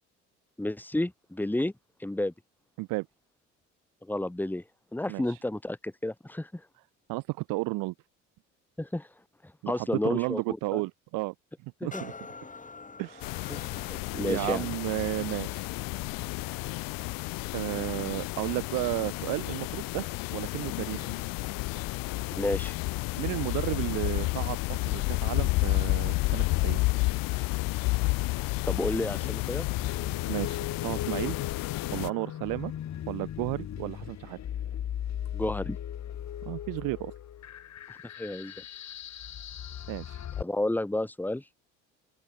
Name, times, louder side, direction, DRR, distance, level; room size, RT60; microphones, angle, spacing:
voice 1, 0.6-1.7 2.0-2.3 4.0-4.6 4.9-6.6 8.8-9.1 9.7-10.4 10.7-10.8 11.8-12.0 13.5-14.7 22.4-22.7 28.7-29.7 35.3-35.8 38.2-38.5 40.4-41.4, left 1 dB, 5° left, 1.6 m, -31 dB
voice 2, 7.1-7.9 9.6-11.3 11.6-12.1 13.0-13.3 14.1-15.7 17.5-21.2 23.2-26.8 30.3-31.4 31.9-32.7 33.1-34.4 36.4-37.1 39.9-40.2, right 23 dB, 65° right, 0.9 m, -33 dB
sound 1, 11.9-19.5 20.1-20.2, left 4 dB, 20° left, 3.8 m, -50 dB
sound 2, 13.2-32.1, left 24 dB, 65° left, 1.0 m, -31 dB
sound 3, 29.8-40.4, left 10 dB, 50° left, 4.0 m, -38 dB
open air
hypercardioid pair, 70°, 36 cm